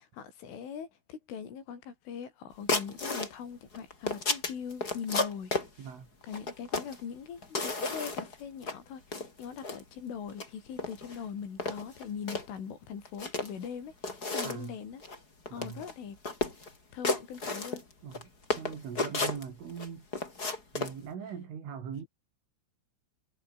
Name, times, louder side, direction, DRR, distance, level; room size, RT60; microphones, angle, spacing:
voice 1, 0.0-5.5 6.2-15.0 15.5-16.2 16.9-17.8, left 7 dB, 75° left, 7.2 m, -41 dB
sound 1, 2.7-3.3 3.7-5.7 6.3-7.0 7.4-8.3 8.6-8.8 9.1-9.8 10.3-10.5 10.8-11.2 11.6-12.5 13.1-13.7 14.0-14.7 15.0-15.2 15.5-15.9 16.2-16.7 17.0-18.2 18.5-19.9 20.1-21.0, left 3 dB, 20° left, 4.3 m, -32 dB
voice 2, 5.8-6.1 14.4-14.8 15.5-15.8 18.0-18.3 18.6-20.1 20.7-22.1, right 7 dB, 75° right, 7.2 m, -41 dB
omnidirectional pair, 5.7 m